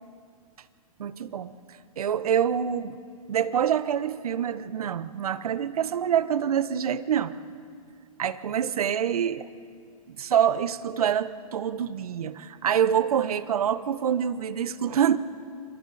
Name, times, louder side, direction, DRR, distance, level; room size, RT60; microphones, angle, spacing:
voice 1, 1.0-1.5 2.0-3.0 3.3-7.3 8.2-9.5 10.1-15.2, right 9 dB, 75° right, 14 dB, 1.1 m, -26 dB
28.0 x 26.5 x 4.2 m, 2.2 s
hypercardioid pair, 135°, 19 cm